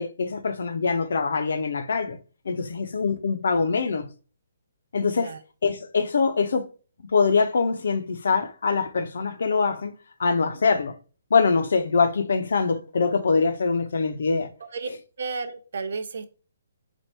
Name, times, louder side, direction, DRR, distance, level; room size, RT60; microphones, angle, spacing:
voice 1, 0.0-2.2 2.5-4.0 4.9-5.3 5.6-6.6 7.1-9.9 10.2-10.9 11.3-14.5, left 4 dB, 70° left, 0.8 m, -23 dB
voice 2, 15.2-16.3, right 4 dB, 65° right, 0.8 m, -32 dB
4.4 x 2.5 x 4.5 m
hypercardioid pair, 170°, 0 cm